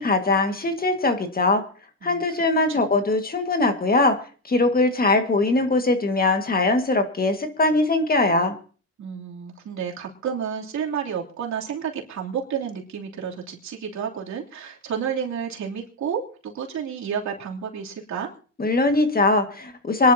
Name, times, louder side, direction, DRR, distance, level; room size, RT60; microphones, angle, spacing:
voice 1, 0.0-1.6 2.0-4.2 4.5-8.5 18.6-20.1, left 2 dB, 30° left, 7 dB, 1.8 m, -21 dB
voice 2, 9.0-18.3, right 7 dB, 65° right, -1 dB, 3.1 m, -31 dB
25.5 x 11.5 x 2.8 m, 0.39 s
cardioid pair, 90°, 30 cm